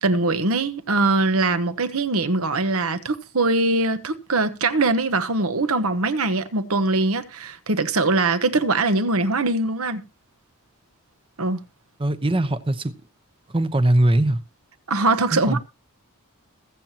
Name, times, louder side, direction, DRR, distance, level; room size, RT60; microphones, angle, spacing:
voice 1, 0.0-10.0 11.4-11.6 14.9-15.6, right 3 dB, 70° right, 1.2 m, -22 dB
voice 2, 12.0-12.9 13.5-14.4 15.3-15.6, right 1 dB, 25° right, 0.8 m, -20 dB
22.0 x 7.5 x 2.8 m
head